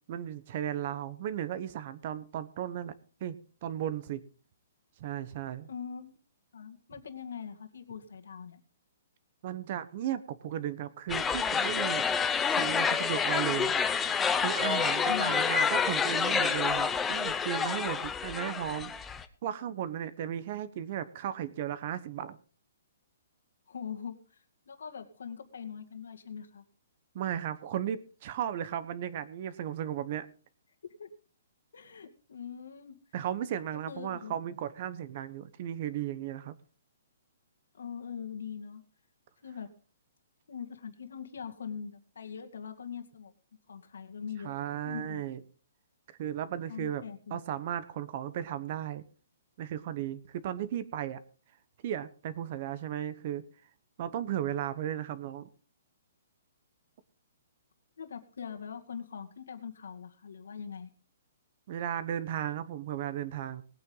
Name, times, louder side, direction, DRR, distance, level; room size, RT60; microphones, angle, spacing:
voice 1, 0.1-2.9 3.2-3.4 3.6-4.2 5.0-5.7 9.4-12.0 12.4-13.7 14.4-18.9 19.4-22.4 27.1-30.3 33.1-36.6 44.4-45.4 46.2-47.0 47.3-49.0 49.6-51.2 51.8-53.4 54.0-55.5 61.7-63.6, right 10 dB, 35° right, 14 dB, 1.0 m, -35 dB
voice 2, 5.7-6.2 6.5-8.6 15.1-15.4 23.7-24.4 24.7-26.6 31.0-31.1 31.7-33.0 33.7-34.4 37.7-38.8 39.4-39.7 40.5-43.3 43.7-44.6 44.8-45.2 46.7-47.4 58.0-60.9, left 7 dB, 80° left, 6 dB, 2.1 m, -42 dB
sound 1, 11.1-19.2, left 6 dB, 10° left, 0.7 m, -28 dB
19.0 x 9.1 x 3.9 m, 0.37 s
hypercardioid pair, 170°, 0 cm